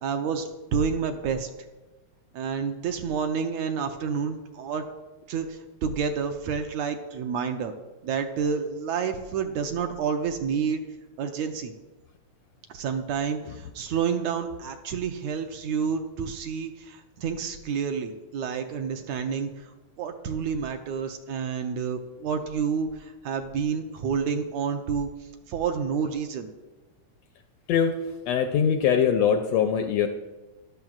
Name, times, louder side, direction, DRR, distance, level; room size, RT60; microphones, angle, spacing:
voice 1, 0.0-1.5 2.3-4.8 5.3-7.7 8.0-10.8 11.2-11.7 12.7-19.7 20.0-25.1 25.5-26.5, right 6 dB, 75° right, 5 dB, 1.8 m, -29 dB
voice 2, 28.3-30.1, left 8 dB, 80° left, 6 dB, 1.5 m, -22 dB
13.5 x 12.0 x 2.4 m, 1.1 s
omnidirectional pair, 3.4 m